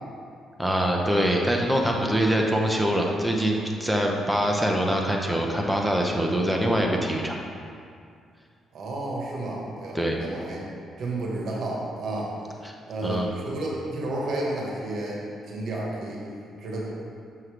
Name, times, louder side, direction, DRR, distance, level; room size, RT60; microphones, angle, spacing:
voice 1, 0.6-7.4 9.9-10.2 12.6-12.7 13.0-13.3, equal, ahead, 0 dB, 0.8 m, -24 dB
voice 2, 8.7-10.6 11.0-12.3 12.9-16.2 16.6-16.9, right 1 dB, 65° right, -3 dB, 1.5 m, -31 dB
6.2 x 5.6 x 3.4 m, 2.3 s
cardioid pair, 95°, 0 cm